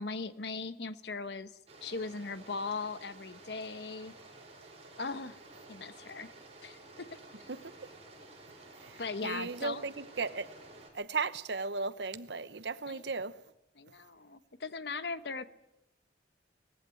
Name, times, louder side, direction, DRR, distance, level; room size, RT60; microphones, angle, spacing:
voice 1, 0.0-4.1 5.0-5.4 5.7-6.3 6.6-7.5 9.0-9.9 12.9-13.0 13.8-15.4, left 4 dB, 65° left, 1.1 m, -39 dB
sound 1, 1.7-10.9, right 2 dB, 35° right, 6.6 m, -53 dB
voice 2, 9.2-10.5 10.9-13.3, right 4 dB, 70° right, 1.0 m, -35 dB
20.0 x 15.0 x 9.1 m
head